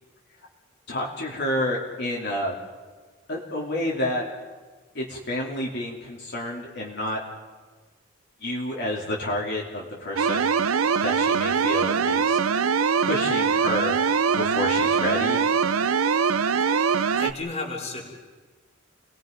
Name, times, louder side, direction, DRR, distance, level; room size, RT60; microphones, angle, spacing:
voice 1, 0.9-2.5 3.3-4.2 4.9-7.2 8.4-10.6 11.0-12.4 13.0-14.0 14.3-15.4, left 1 dB, 55° left, -3 dB, 2.9 m, -29 dB
sound 1, 10.2-17.3, right 6 dB, 90° right, 0.6 m, -22 dB
voice 2, 16.6-18.1, left 3 dB, 30° left, -1 dB, 3.3 m, -34 dB
29.5 x 20.5 x 5.2 m, 1.4 s
head